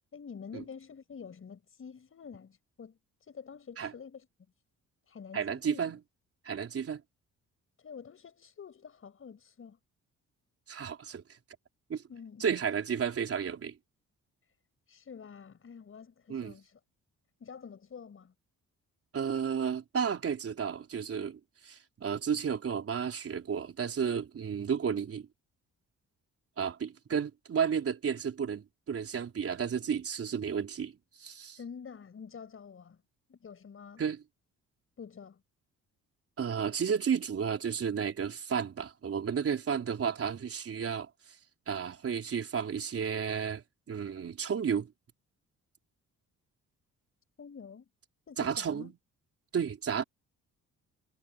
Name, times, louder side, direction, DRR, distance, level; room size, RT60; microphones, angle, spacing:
voice 1, 0.1-4.3 5.1-5.9 7.8-9.8 12.1-12.4 14.9-16.8 17.4-18.3 31.5-33.0 33.3-34.0 35.0-35.4 47.4-47.9 48.3-48.9, left 6 dB, 45° left, 6.3 m, -48 dB
voice 2, 5.3-6.0 6.4-7.0 10.7-11.2 11.9-12.0 12.4-13.7 16.3-16.5 19.1-25.3 26.6-30.9 31.2-31.6 34.0-34.2 36.4-41.1 41.7-44.9 48.4-48.9 49.5-50.0, right 7 dB, 50° right, 4.1 m, -32 dB
cardioid pair, 90°, 30 cm